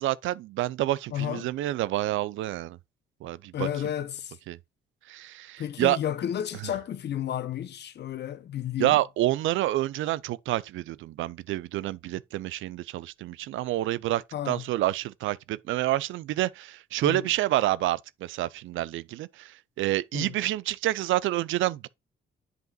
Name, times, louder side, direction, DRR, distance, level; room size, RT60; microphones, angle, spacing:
voice 1, 0.0-2.8 3.2-3.7 4.5-4.6 5.1-6.0 6.6-6.7 8.8-19.5 19.8-21.9, right 15 dB, 80° right, 0.5 m, -28 dB
voice 2, 1.1-1.5 3.5-4.3 5.6-9.0 14.3-14.6 17.0-17.2 20.1-20.3, left 10 dB, 60° left, 0.8 m, -32 dB
7.9 x 5.1 x 2.3 m
cardioid pair, 90°, 20 cm